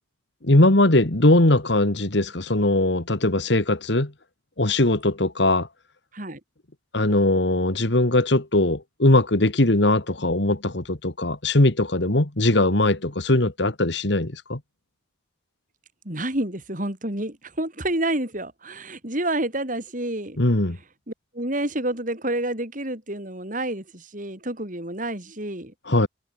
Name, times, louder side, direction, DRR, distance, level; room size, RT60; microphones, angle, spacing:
voice 1, 0.4-4.1 4.6-5.7 6.9-14.6 20.4-20.8 25.9-26.1, left 2 dB, 65° left, 2.0 m, -20 dB
voice 2, 16.0-20.4 21.1-25.7, right 1 dB, 40° right, 5.0 m, -29 dB
head